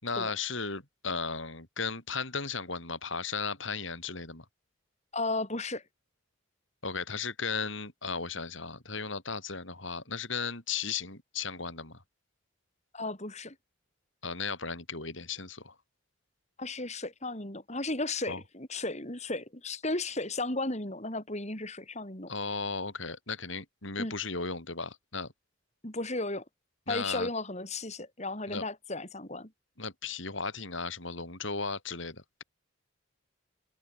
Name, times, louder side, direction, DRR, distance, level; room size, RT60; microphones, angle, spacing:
voice 1, 0.0-4.4 6.8-12.0 14.2-15.7 18.3-18.4 22.3-25.3 26.9-27.3 28.5-28.6 29.8-32.4, left 4 dB, 65° left, 6.1 m, -35 dB
voice 2, 5.1-5.8 12.9-13.6 16.6-22.3 24.0-24.1 25.8-26.4 26.9-29.5, left 2 dB, 35° left, 5.2 m, -34 dB
open air
head